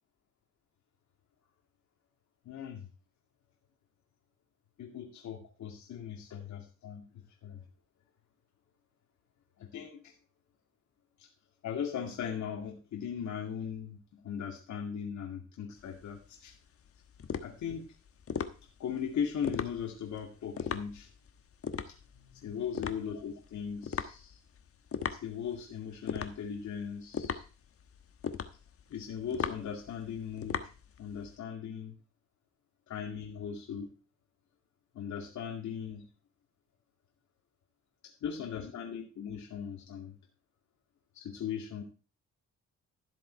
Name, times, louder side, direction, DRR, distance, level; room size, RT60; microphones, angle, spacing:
voice 1, 2.5-2.9 4.8-7.1 7.4-7.6 9.6-10.1 11.2-11.3 11.6-16.5 17.4-17.8 18.8-21.1 21.9-22.0 22.3-24.4 25.1-27.4 28.9-30.6 31.0-31.9 32.9-33.9 34.9-36.1 38.2-40.2 41.1-41.8, left 7 dB, 70° left, 1 dB, 2.3 m, -38 dB
sound 1, 15.8-31.4, left 7 dB, 50° left, 1.2 m, -39 dB
13.5 x 7.6 x 4.5 m, 0.35 s
cardioid pair, 90°, 30 cm